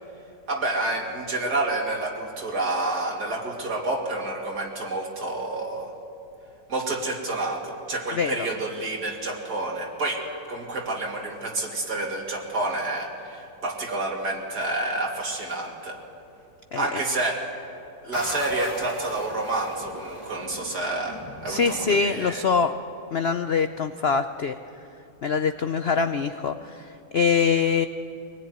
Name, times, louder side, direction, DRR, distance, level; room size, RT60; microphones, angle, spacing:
voice 1, 0.5-5.9 6.7-16.0 16.7-17.4 18.0-22.4, right 2 dB, 65° right, 0 dB, 3.2 m, -29 dB
voice 2, 8.1-8.5 16.7-17.0 21.5-22.7 23.1-24.6 25.2-27.9, left 5 dB, 65° left, 9 dB, 0.6 m, -24 dB
sound 1, 18.1-22.6, left 2 dB, 20° left, 1.2 m, -39 dB
24.0 x 19.5 x 9.3 m, 2.8 s
omnidirectional pair, 1.9 m